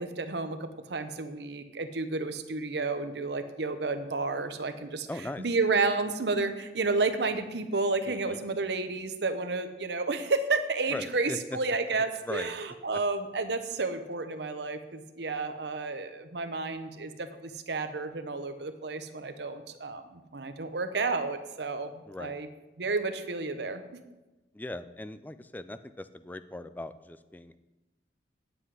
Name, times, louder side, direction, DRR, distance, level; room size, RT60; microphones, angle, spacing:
voice 1, 0.0-5.1 5.4-22.5 22.8-23.8, right 3 dB, 70° right, 9 dB, 0.8 m, -31 dB
voice 2, 5.1-5.4 8.1-8.4 10.9-11.6 12.2-12.5 22.1-22.4 24.5-27.6, left 1 dB, 10° left, 12 dB, 0.3 m, -39 dB
9.7 x 7.9 x 4.9 m, 1.1 s
head